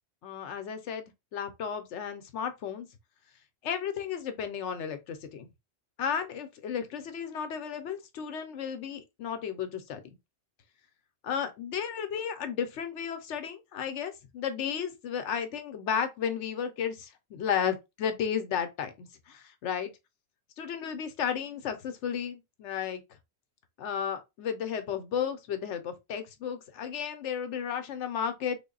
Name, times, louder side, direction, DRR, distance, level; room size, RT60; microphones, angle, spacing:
voice 1, 0.2-1.1 1.3-2.9 3.6-5.5 6.0-10.0 11.2-19.9 20.6-23.0 23.8-28.6, left 8 dB, 80° left, 1.0 m, -33 dB
3.4 x 2.1 x 3.8 m
omnidirectional pair, 1.2 m